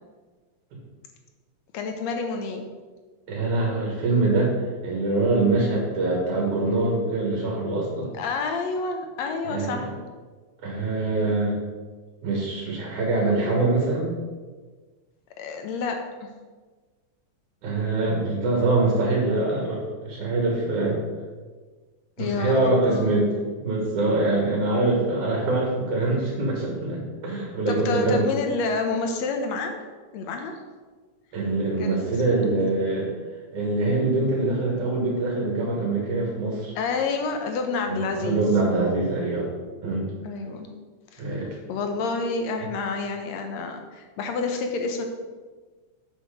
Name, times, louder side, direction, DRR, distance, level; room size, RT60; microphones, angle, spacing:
voice 1, 1.7-2.6 5.6-5.8 8.1-9.9 15.4-16.0 22.2-23.2 27.7-29.8 30.1-30.6 31.8-32.7 36.8-38.4 40.2-40.7 41.1-41.4 41.7-45.0, left 4 dB, 70° left, 5 dB, 2.1 m, -29 dB
voice 2, 3.3-4.5 4.8-8.1 9.4-9.9 10.6-11.6 12.2-14.1 17.6-21.0 22.2-23.3 23.6-28.3 31.3-33.1 33.5-36.7 37.9-39.5 39.8-40.1 41.2-41.5 42.6-42.7, right 2 dB, 85° right, -2 dB, 3.2 m, -24 dB
7.9 x 5.9 x 5.0 m, 1.4 s
omnidirectional pair, 3.3 m